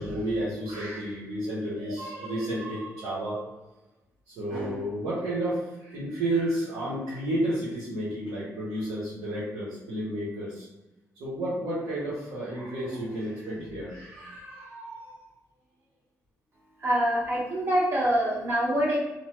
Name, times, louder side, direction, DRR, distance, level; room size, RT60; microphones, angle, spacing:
voice 1, 0.0-3.5 4.3-10.7 11.2-15.3, right 1 dB, 85° right, -10 dB, 1.1 m, -31 dB
voice 2, 16.8-19.0, right 1 dB, 40° right, -4 dB, 1.2 m, -25 dB
2.9 x 2.2 x 3.0 m, 1.0 s
cardioid pair, 80°, 6 cm